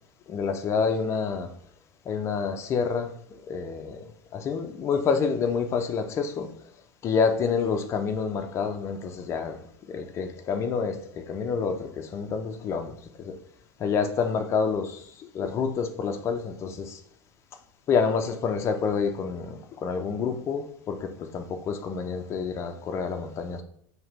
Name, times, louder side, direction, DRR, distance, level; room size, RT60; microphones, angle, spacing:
voice 1, 0.3-1.5 2.1-4.1 4.3-6.5 7.0-9.6 9.9-13.4 13.8-17.0 17.9-23.6, left 5 dB, 25° left, 7 dB, 0.4 m, -28 dB
4.9 x 2.8 x 3.0 m, 0.65 s
supercardioid pair, 150°, 10 cm